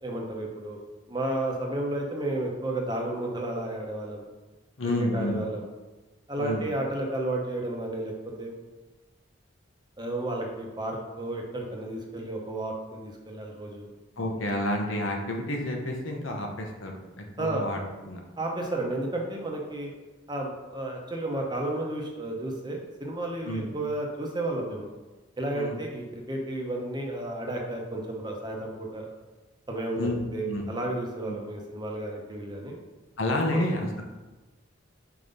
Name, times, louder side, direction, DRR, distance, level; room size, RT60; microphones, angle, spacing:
voice 1, 0.0-0.8 1.1-4.2 5.1-5.7 6.3-8.1 8.4-8.5 10.0-13.9 17.4-17.6 18.4-19.9 20.3-24.9 25.4-29.1 29.7-32.8 33.5-33.6, right 1 dB, 20° right, 0 dB, 0.8 m, -32 dB
voice 2, 4.8-5.4 6.4-6.7 14.2-18.2 23.4-23.7 25.5-25.8 30.0-30.7 31.3-31.4 33.2-34.0, left 1 dB, 80° left, 1 dB, 1.0 m, -30 dB
4.8 x 3.9 x 5.2 m, 1.2 s
head